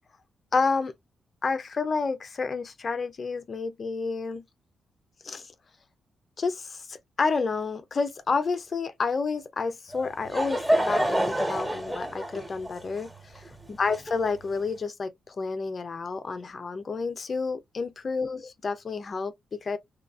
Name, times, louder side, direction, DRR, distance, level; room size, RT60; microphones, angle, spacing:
voice 1, 0.5-0.9 1.4-4.4 5.2-5.4 6.4-13.1 13.3-13.4 13.7-19.8, left 4 dB, 50° left, 0.7 m, -30 dB
Laughter / Crowd, 9.9-14.6, right 1 dB, 10° right, 1.4 m, -28 dB
3.0 x 2.4 x 2.4 m
supercardioid pair, 55°, 0 cm